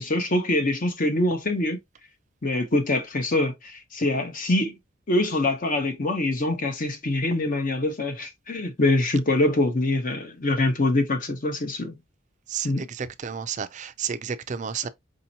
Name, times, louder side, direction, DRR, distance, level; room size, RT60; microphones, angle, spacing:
voice 1, 0.0-1.8 2.4-4.8 5.1-12.0 12.6-12.8, left 2 dB, 40° left, 0.8 m, -24 dB
voice 2, 12.5-14.9, right 7 dB, 35° right, 0.4 m, -31 dB
5.1 x 2.8 x 2.7 m
head